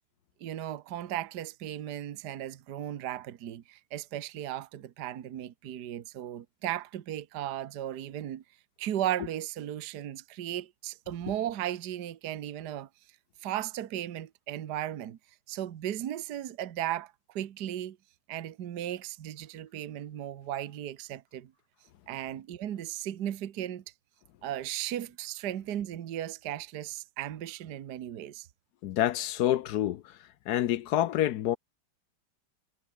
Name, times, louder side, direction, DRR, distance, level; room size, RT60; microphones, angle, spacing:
voice 1, 0.4-8.4 8.8-12.9 13.4-15.2 15.5-18.0 18.3-21.5 22.1-23.8 24.4-28.5, right 12 dB, 60° right, 1.5 m, -36 dB
voice 2, 28.8-30.2 30.5-31.6, left 12 dB, 70° left, 1.0 m, -27 dB
omnidirectional pair, 2.1 m